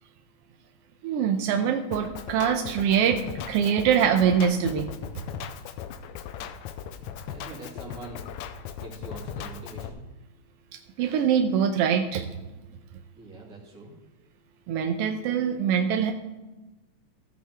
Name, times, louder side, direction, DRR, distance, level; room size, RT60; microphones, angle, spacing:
voice 1, 1.0-4.9 10.7-12.3 14.7-16.1, right 7 dB, 85° right, 5 dB, 1.3 m, -24 dB
Drum kit, 1.9-9.9, left 8 dB, 80° left, 1.9 m, -38 dB
voice 2, 7.2-8.2 8.8-10.0 13.2-14.0, right 2 dB, 30° right, -4 dB, 2.6 m, -43 dB
15.0 x 7.6 x 3.4 m, 1.1 s
omnidirectional pair, 3.3 m